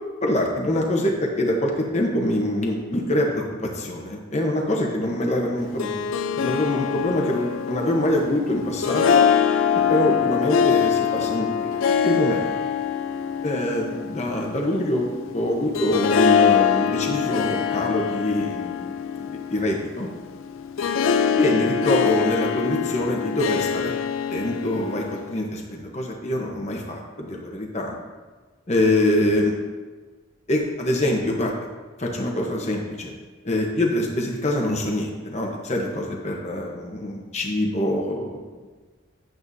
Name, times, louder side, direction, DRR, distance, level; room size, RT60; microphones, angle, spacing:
voice 1, 0.2-6.0 6.4-9.2 9.9-11.7 12.0-12.5 13.4-18.8 19.3-20.1 21.4-23.9 24.3-28.0 28.7-29.5 30.5-31.5 32.0-33.1 33.4-38.4, left 1 dB, 35° left, 0 dB, 0.9 m, -24 dB
Harp, 5.6-25.4, left 7 dB, 85° left, 0.5 m, -24 dB
8.9 x 8.6 x 2.7 m, 1.3 s
head